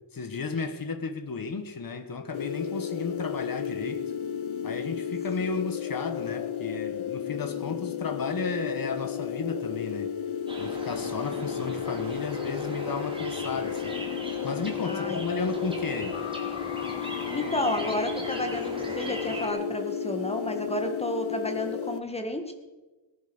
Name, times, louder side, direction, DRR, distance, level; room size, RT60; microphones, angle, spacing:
voice 1, 0.1-4.0 4.6-10.1 10.6-14.0 14.4-16.2, left 4 dB, 45° left, 7 dB, 1.6 m, -33 dB
sound 1, 2.3-22.0, left 9 dB, 75° left, 0.7 m, -33 dB
sound 2, 10.5-19.5, right 1 dB, 10° right, 3.0 m, -39 dB
voice 2, 14.8-15.2 17.3-22.5, left 1 dB, 15° left, 5 dB, 1.7 m, -31 dB
18.5 x 10.5 x 6.2 m, 1.2 s
wide cardioid pair, 170°, 48 cm